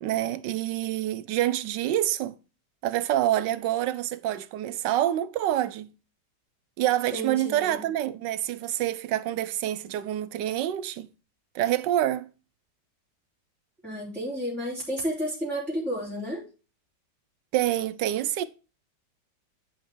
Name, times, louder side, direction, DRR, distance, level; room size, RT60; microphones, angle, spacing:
voice 1, 0.0-2.4 2.8-5.9 6.8-11.1 11.5-12.3 17.5-18.4, right 13 dB, 80° right, 1.3 m, -27 dB
voice 2, 7.1-7.8 13.8-16.4, equal, ahead, 3.1 m, -31 dB
9.4 x 5.5 x 3.1 m
omnidirectional pair, 1.9 m